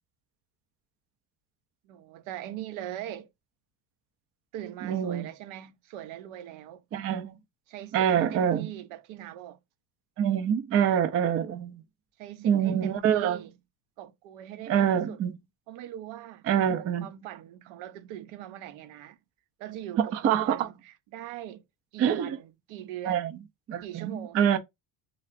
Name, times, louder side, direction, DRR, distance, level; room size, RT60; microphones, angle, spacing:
voice 1, 1.8-3.3 4.5-6.8 7.7-9.6 12.2-13.5 14.0-15.2 15.7-16.4 17.0-19.2 19.6-21.6 21.9-23.3 23.8-24.6, right 12 dB, 75° right, 0.8 m, -41 dB
voice 2, 4.8-5.3 6.9-7.4 7.9-8.7 10.2-11.8 12.4-13.4 14.7-15.3 16.5-17.1 20.0-20.7 22.0-22.4 23.0-23.3 23.7-24.6, right 9 dB, 30° right, 0.4 m, -25 dB
3.7 x 3.3 x 2.4 m
cardioid pair, 130°, 49 cm